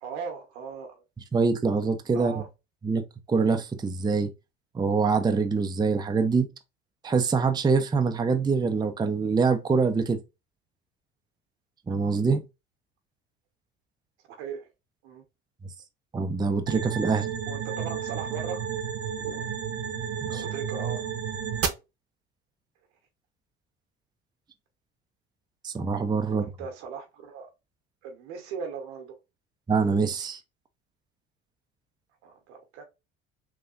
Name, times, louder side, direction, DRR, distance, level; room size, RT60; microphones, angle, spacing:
voice 1, 0.0-1.0 2.1-2.5 14.3-14.7 15.0-15.2 17.5-18.7 19.2-19.5 20.3-21.1 26.2-27.5 28.0-29.1 32.2-32.8, right 6 dB, 80° right, 1.1 m, -38 dB
voice 2, 1.3-2.3 2.8-4.3 4.7-6.5 7.0-10.2 11.9-12.4 16.1-17.3 20.3-20.4 25.6-26.4 29.7-30.4, right 4 dB, 15° right, 0.5 m, -24 dB
sound 1, 16.7-21.7, right 8 dB, 45° right, 0.8 m, -31 dB
3.5 x 2.6 x 2.4 m
hypercardioid pair, 70°, 33 cm